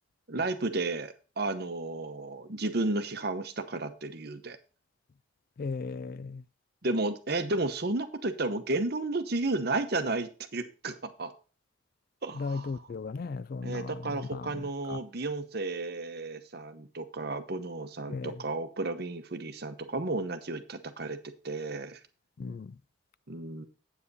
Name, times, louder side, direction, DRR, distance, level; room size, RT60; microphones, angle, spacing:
voice 1, 0.3-4.6 6.8-11.3 12.2-12.7 13.6-22.0 23.3-23.6, right 2 dB, 50° right, 0.9 m, -33 dB
voice 2, 5.6-6.4 12.3-15.0 18.1-18.4 22.4-22.8, left 4 dB, 45° left, 0.3 m, -37 dB
8.2 x 7.7 x 4.1 m
head